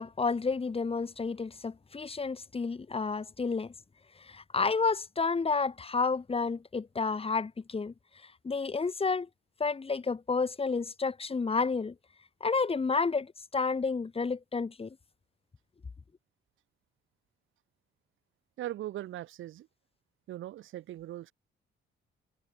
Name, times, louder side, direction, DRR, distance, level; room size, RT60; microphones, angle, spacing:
voice 1, 0.0-3.7 4.3-7.9 8.4-9.3 9.6-11.9 12.4-15.0, left 4 dB, 30° left, 2.2 m, -30 dB
voice 2, 18.6-19.7 20.3-21.3, right 13 dB, 80° right, 3.4 m, -39 dB
cardioid pair, 90°, 20 cm